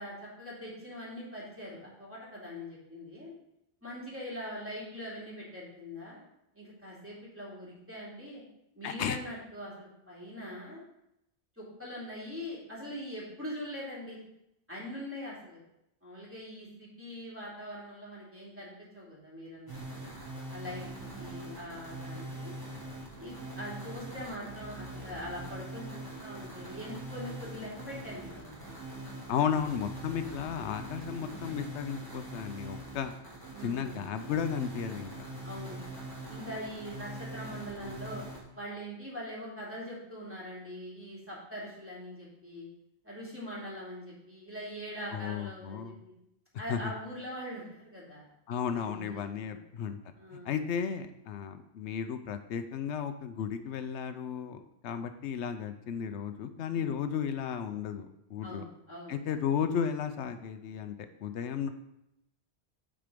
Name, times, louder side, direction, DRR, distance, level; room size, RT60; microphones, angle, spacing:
voice 1, 0.0-3.3 3.8-6.2 6.5-8.4 8.7-10.8 11.6-14.2 14.7-15.6 16.0-20.0 20.5-20.8 21.2-22.5 23.1-28.7 33.5-34.0 35.4-35.8 36.3-38.2 38.5-42.7 43.0-46.1 46.6-48.3 48.7-49.6 50.2-50.5 58.4-59.2, equal, 10° right, -6 dB, 2.9 m, -42 dB
voice 2, 8.8-9.2 29.3-33.1 33.6-35.1 45.1-46.0 46.7-46.9 48.5-50.0 50.4-58.6 59.1-60.9 61.2-61.7, left 7 dB, 85° left, 9 dB, 0.9 m, -34 dB
sound 1, 19.7-38.4, right 1 dB, 20° left, 2.1 m, -43 dB
8.8 x 4.6 x 5.1 m, 0.82 s
omnidirectional pair, 1.1 m